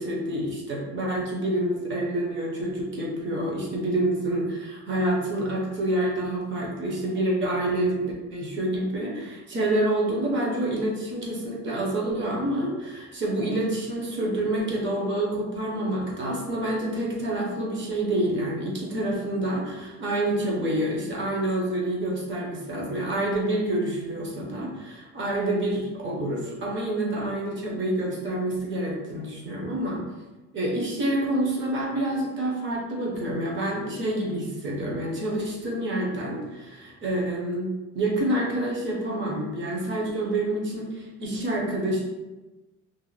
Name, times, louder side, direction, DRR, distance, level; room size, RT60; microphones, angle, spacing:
voice 1, 0.0-30.0 30.5-42.0, right 1 dB, 40° right, -3 dB, 0.6 m, -27 dB
2.5 x 2.0 x 3.1 m, 1.1 s
cardioid pair, 175°, 30 cm